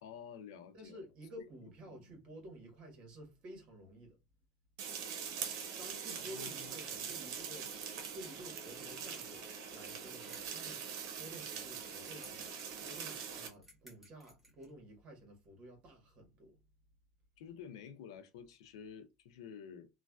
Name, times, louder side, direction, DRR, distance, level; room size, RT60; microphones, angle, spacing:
voice 1, 0.0-1.0 1.9-2.2 6.3-6.7 17.4-19.9, left 7 dB, 90° left, 0.5 m, -50 dB
voice 2, 0.7-4.2 5.8-7.7 8.1-10.8 11.2-16.6, right 1 dB, 40° right, 1.5 m, -52 dB
sound 1, 4.8-13.5, right 7 dB, 75° right, 0.9 m, -43 dB
sound 2, 10.3-14.7, equal, 5° right, 1.3 m, -60 dB
3.1 x 2.4 x 2.3 m
supercardioid pair, 125°, 3 cm